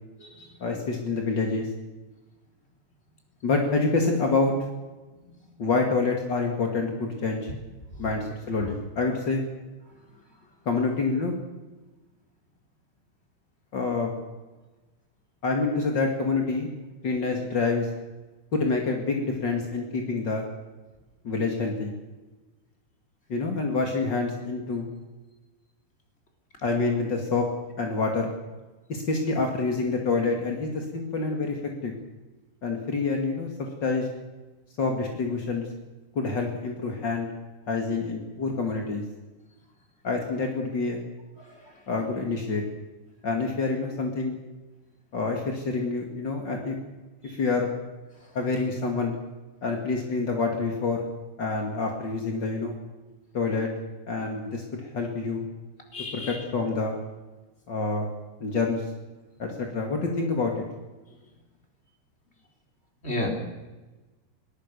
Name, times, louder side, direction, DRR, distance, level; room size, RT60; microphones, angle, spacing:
voice 1, 0.6-1.7 3.4-4.5 5.6-7.5 8.0-9.4 10.6-11.3 13.7-14.2 15.4-16.7 17.0-17.9 18.5-20.4 21.2-21.9 23.3-24.9 26.6-27.5 27.8-28.3 28.9-31.6 31.8-31.9 32.6-34.1 34.8-35.7 36.1-37.3 37.7-39.0 40.0-41.0 41.9-42.6 43.2-44.4 45.1-46.8 47.2-47.7 48.3-49.2 49.6-51.1 51.4-52.7 53.3-53.7 54.1-55.5 56.1-57.0 57.7-58.1 58.4-58.8 59.4-60.6, left 3 dB, 50° left, 2 dB, 1.3 m, -27 dB
voice 2, 55.9-56.4 63.0-63.3, left 2 dB, 15° left, 1 dB, 3.5 m, -31 dB
22.0 x 20.0 x 6.9 m, 1.2 s
omnidirectional pair, 6.0 m